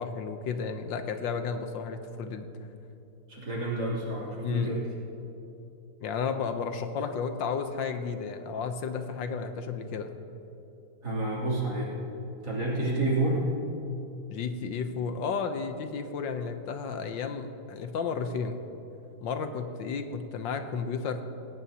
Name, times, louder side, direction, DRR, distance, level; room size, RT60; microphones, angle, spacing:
voice 1, 0.0-2.5 4.4-4.8 6.0-10.2 14.3-18.6 19.2-21.2, left 5 dB, 75° left, 7 dB, 1.5 m, -32 dB
voice 2, 3.3-4.9 11.0-11.9 12.4-13.5, right 2 dB, 55° right, -6 dB, 3.6 m, -29 dB
18.0 x 17.0 x 2.8 m, 2.9 s
omnidirectional pair, 2.0 m